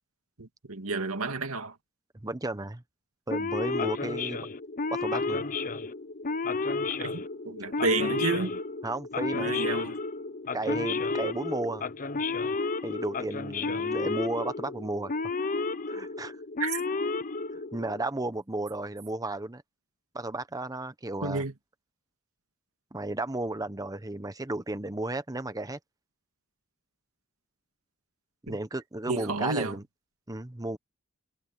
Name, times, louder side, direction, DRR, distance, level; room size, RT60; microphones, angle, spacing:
voice 1, 0.4-1.7 7.0-8.6 9.3-10.0 16.6-16.8 21.2-21.5 28.5-28.6 29.1-29.8, right 3 dB, 85° right, 2.2 m, -31 dB
voice 2, 2.1-2.8 3.3-4.5 4.9-5.4 8.8-9.7 10.5-11.8 12.8-15.1 15.9-16.4 17.7-19.6 20.1-21.4 22.9-25.8 28.4-29.8 30.3-30.8, right 2 dB, 15° right, 1.0 m, -33 dB
Male speech man speaking / Siren, 3.3-18.0, left 3 dB, 40° left, 0.8 m, -32 dB
head